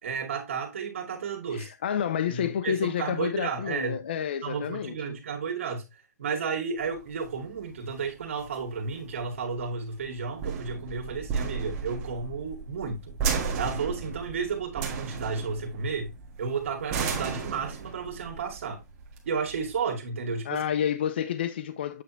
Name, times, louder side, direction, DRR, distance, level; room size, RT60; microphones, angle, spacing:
voice 1, 0.0-1.7 2.3-4.0 4.4-5.8 6.2-13.2 13.6-16.1 16.4-18.8 19.2-20.6, right 5 dB, 50° right, 2.2 m, -32 dB
voice 2, 1.5-5.2 20.5-22.0, left 9 dB, 40° left, 0.4 m, -29 dB
sound 1, 6.8-19.8, right 5 dB, 20° right, 1.4 m, -34 dB
8.5 x 3.4 x 4.4 m
hypercardioid pair, 175°, 9 cm